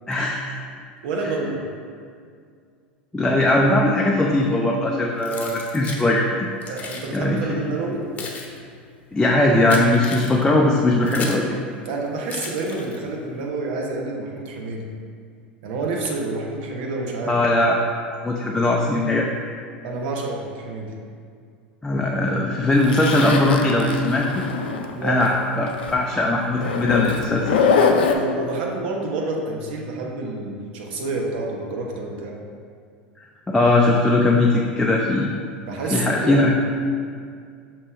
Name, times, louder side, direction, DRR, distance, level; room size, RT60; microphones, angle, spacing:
voice 1, 0.1-0.5 3.1-6.3 7.1-7.6 9.1-11.6 17.3-17.8 18.2-19.3 21.8-24.3 25.0-27.6 33.5-35.3 35.9-36.5, left 2 dB, 10° left, -2 dB, 0.5 m, -19 dB
voice 2, 1.0-1.7 6.7-8.1 11.8-14.9 15.6-17.4 19.8-20.9 24.9-25.3 28.1-32.4 35.7-36.5, right 2 dB, 65° right, -1 dB, 1.0 m, -28 dB
Keys jangling, 5.2-6.1 6.6-7.1 7.8-11.5 12.3-13.2, left 3 dB, 30° left, 0.9 m, -35 dB
Zipper (clothing), 22.8-25.4 25.7-25.9 26.6-28.1, left 5 dB, 75° left, 0.5 m, -23 dB
6.5 x 3.0 x 4.9 m, 2.2 s
hypercardioid pair, 85°, 5 cm